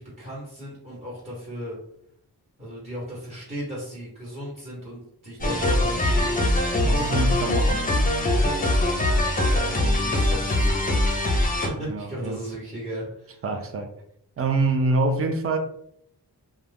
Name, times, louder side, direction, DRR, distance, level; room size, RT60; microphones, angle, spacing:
voice 1, 0.0-1.8 2.6-6.5 9.4-11.4 11.6-13.4, equal, 20° right, 1.2 m, -36 dB
sound 1, 5.4-11.7, left 1 dB, 20° left, 0.6 m, -22 dB
voice 2, 6.8-7.9 11.9-12.4 13.4-13.9 14.4-15.6, right 3 dB, 35° right, 0.5 m, -25 dB
2.4 x 2.2 x 3.3 m
wide cardioid pair, 80°, 40 cm